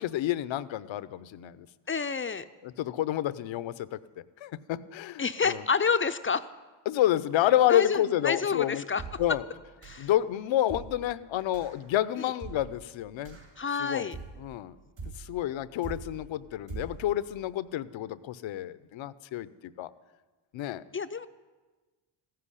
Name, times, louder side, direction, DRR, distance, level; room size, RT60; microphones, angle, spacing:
voice 1, 0.0-1.7 2.6-4.0 4.4-5.6 6.9-8.9 9.2-9.4 10.0-13.4 13.8-14.1 14.4-14.7 15.2-19.5 19.8-19.9 20.5-20.8, left 12 dB, 65° left, 16 dB, 0.7 m, -29 dB
voice 2, 1.9-2.4 5.2-6.5 7.7-9.2 9.8-10.1 12.2-12.3 13.6-14.2 20.9-21.3, left 5 dB, 25° left, 11 dB, 0.6 m, -29 dB
sound 1, 9.0-9.4 9.8-10.2 10.7-11.1 11.5-11.8 12.4-12.8 13.2-13.6 14.1-14.5 15.0-15.4 15.8-16.2 16.7-17.1, right 4 dB, 75° right, 5.3 m, -42 dB
15.0 x 7.8 x 9.9 m, 1.3 s
supercardioid pair, 65°, 50 cm